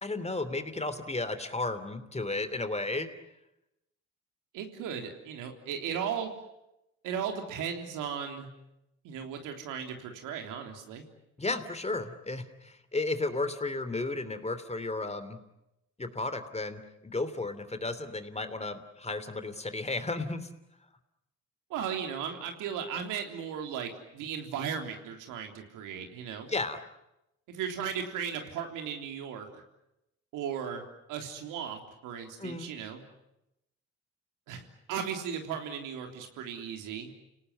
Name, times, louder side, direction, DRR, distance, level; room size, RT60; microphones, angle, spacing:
voice 1, 0.0-3.1 11.4-15.4 16.0-20.5 26.5-26.8 32.4-32.7, left 2 dB, 20° left, 11 dB, 3.0 m, -33 dB
voice 2, 4.5-6.3 7.0-8.5 9.0-11.0 21.7-26.5 27.5-29.6 30.3-30.8 31.1-33.0 34.5-37.1, right 7 dB, 80° right, 4 dB, 3.6 m, -36 dB
29.5 x 18.5 x 9.7 m, 0.89 s
supercardioid pair, 60°, 31 cm